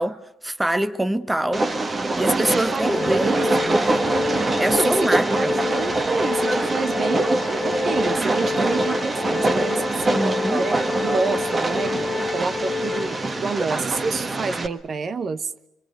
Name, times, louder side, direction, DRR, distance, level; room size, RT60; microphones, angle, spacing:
voice 1, 0.0-1.7 2.2-4.0 4.6-5.5 10.1-10.7, right 1 dB, 10° right, 0.9 m, -25 dB
Train, 1.5-14.7, right 2 dB, 35° right, 1.5 m, -24 dB
voice 2, 2.4-3.7 4.1-4.5 4.7-10.2 10.6-10.8 11.0-12.0 12.3-15.5, right 4 dB, 50° right, 1.0 m, -28 dB
Organ, 2.8-13.7, left 5 dB, 30° left, 1.3 m, -29 dB
25.5 x 25.0 x 6.7 m
cardioid pair, 90°, 0 cm